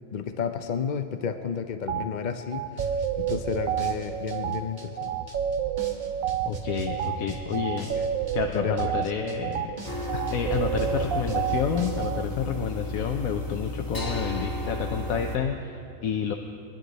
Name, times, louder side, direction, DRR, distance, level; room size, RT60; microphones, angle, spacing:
voice 1, 0.1-5.1 7.9-8.1 8.5-8.9 10.1-10.3, left 6 dB, 60° left, 8 dB, 0.4 m, -32 dB
sound 1, 1.9-2.1 2.5-12.2, right 9 dB, 75° right, 1.0 m, -30 dB
sound 2, 2.8-12.1, right 4 dB, 35° right, 1.4 m, -41 dB
voice 2, 6.4-8.0 8.3-9.7 10.3-16.3, left 7 dB, 80° left, 3 dB, 1.2 m, -29 dB
sound 3, 9.8-15.4, left 1 dB, 15° left, 1.2 m, -33 dB
23.5 x 11.0 x 4.0 m, 2.7 s
omnidirectional pair, 1.5 m